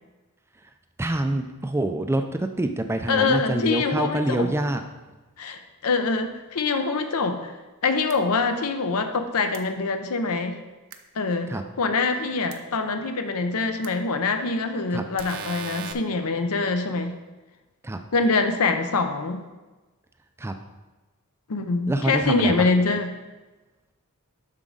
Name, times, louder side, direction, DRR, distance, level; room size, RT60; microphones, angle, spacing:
voice 1, 1.0-4.8 11.5-11.6 14.9-15.0 17.8-18.0 20.4-20.5 21.9-22.7, right 1 dB, 10° right, 7 dB, 0.3 m, -26 dB
voice 2, 3.1-4.5 5.4-7.5 7.8-10.6 11.2-17.2 18.1-19.4 21.5-23.2, left 3 dB, 75° left, 7 dB, 0.7 m, -24 dB
sound 1, 8.1-8.2 9.5-9.6 10.9-11.0 12.5-12.6 13.8-13.9 15.2-15.9, right 6 dB, 60° right, 0.6 m, -36 dB
7.4 x 6.0 x 3.9 m, 1.2 s
head